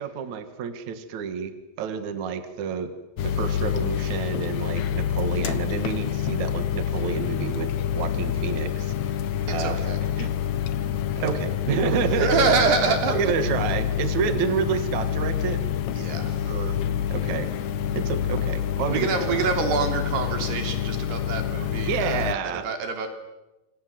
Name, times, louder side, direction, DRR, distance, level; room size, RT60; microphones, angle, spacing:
voice 1, 0.0-2.9 3.2-9.2 9.5-9.8 10.2-10.3 11.2-12.3 13.1-15.6 16.5-16.8 17.1-17.5 18.0-19.4 21.9-22.7, right 7 dB, 55° right, 10 dB, 2.5 m, -29 dB
sound 1, 3.2-22.3, left 9 dB, 85° left, 1.6 m, -27 dB
voice 2, 9.5-10.0 12.0-13.2 15.9-16.5 18.9-23.1, right 5 dB, 70° right, 6 dB, 5.1 m, -26 dB
28.0 x 27.0 x 7.7 m, 1.0 s
omnidirectional pair, 5.0 m